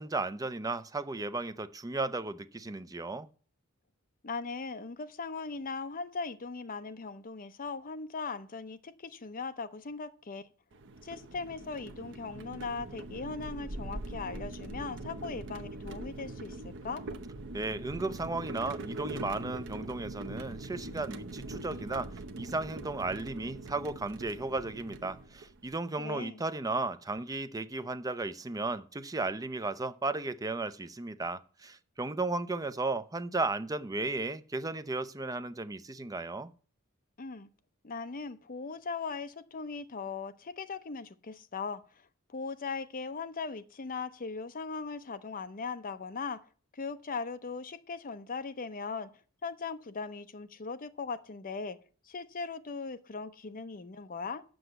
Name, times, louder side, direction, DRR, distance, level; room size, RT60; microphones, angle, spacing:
voice 1, 0.0-3.3 17.5-36.5, right 3 dB, 15° right, 0.5 m, -35 dB
voice 2, 4.2-10.5 11.0-17.0 26.0-26.4 37.2-37.5 37.8-41.8 42.3-46.4 46.7-49.1 49.4-51.8 52.1-54.4, left 4 dB, 40° left, 0.7 m, -39 dB
sound 1, 10.7-25.7, right 2 dB, 60° right, 0.8 m, -42 dB
7.9 x 6.3 x 7.9 m
head